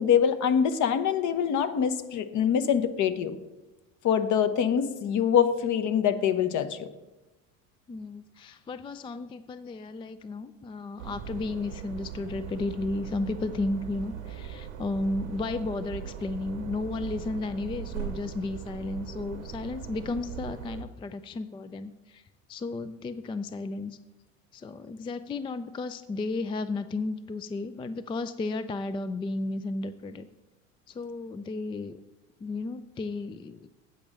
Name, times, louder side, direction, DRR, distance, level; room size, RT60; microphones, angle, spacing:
voice 1, 0.0-3.4 4.0-6.9, left 8 dB, 50° left, 10 dB, 1.0 m, -24 dB
voice 2, 7.9-22.2 22.5-24.0 24.5-30.3 30.9-32.0 32.4-33.7, left 3 dB, 15° left, 12 dB, 0.3 m, -33 dB
sound 1, 11.0-20.8, right 8 dB, 85° right, 1.1 m, -40 dB
8.5 x 5.2 x 7.4 m, 1.1 s
hypercardioid pair, 75°, 38 cm